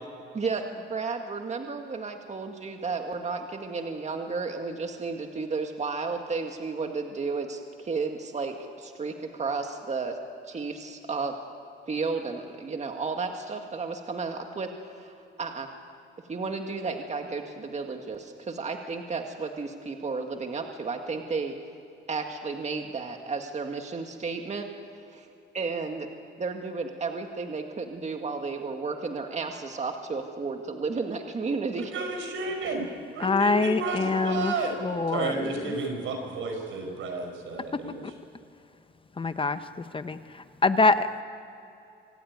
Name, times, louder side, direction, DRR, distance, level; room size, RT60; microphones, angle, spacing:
voice 1, 0.3-10.2 10.5-11.4 11.9-15.7 16.3-21.5 22.1-24.7 25.1-25.3 25.5-26.1 26.4-31.9, right 4 dB, 35° right, 4 dB, 1.9 m, -33 dB
voice 2, 31.9-32.8 33.1-34.7 35.1-38.1, right 3 dB, 80° right, 3 dB, 5.7 m, -32 dB
voice 3, 33.2-34.5 34.8-35.5 39.2-39.6 39.9-40.2 40.6-41.2, left 3 dB, 25° left, 11 dB, 0.9 m, -24 dB
25.5 x 14.5 x 9.6 m, 2.8 s
cardioid pair, 90°, 20 cm